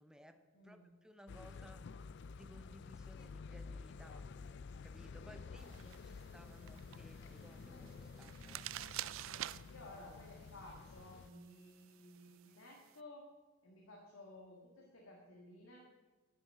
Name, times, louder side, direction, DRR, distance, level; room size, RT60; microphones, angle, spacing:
voice 1, 0.0-4.3 4.8-8.7, equal, 5° right, 9 dB, 0.6 m, -60 dB
voice 2, 0.5-0.9 5.3-5.7 9.7-13.3 13.6-15.9, left 1 dB, 75° left, 0 dB, 1.7 m, -56 dB
sound 1, 1.3-11.3, left 4 dB, 55° left, 0.3 m, -51 dB
sound 2, 3.3-8.3, left 1 dB, 35° left, 0.8 m, -63 dB
sound 3, 5.6-13.0, right 14 dB, 65° right, 0.3 m, -50 dB
10.5 x 6.9 x 8.2 m, 1.3 s
head